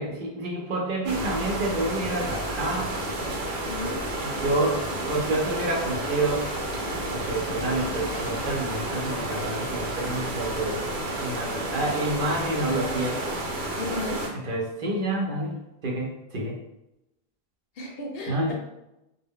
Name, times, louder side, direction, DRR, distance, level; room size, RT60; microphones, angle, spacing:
voice 1, 0.0-2.9 4.2-6.4 7.1-10.8 11.2-13.2 14.4-15.5 15.8-16.5 18.3-18.5, right 2 dB, 60° right, -2 dB, 0.7 m, -28 dB
sound 1, 1.1-14.3, right 1 dB, 85° right, 0.9 m, -31 dB
voice 2, 3.7-4.0 13.8-14.3 17.8-18.5, left 2 dB, 70° left, 1 dB, 0.7 m, -34 dB
2.1 x 2.1 x 3.5 m, 0.90 s
omnidirectional pair, 1.1 m